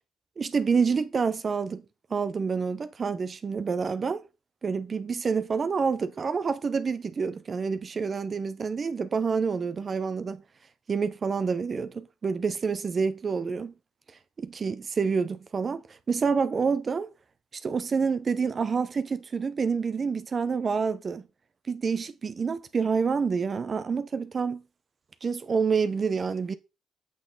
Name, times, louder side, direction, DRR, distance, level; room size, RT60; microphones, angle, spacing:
voice 1, 0.4-1.8 2.1-4.2 4.6-10.4 10.9-13.7 14.4-17.1 17.5-21.2 21.7-24.6 25.2-26.5, right 5 dB, 40° right, 0.7 m, -28 dB
8.3 x 6.0 x 3.8 m
cardioid pair, 90°, 0 cm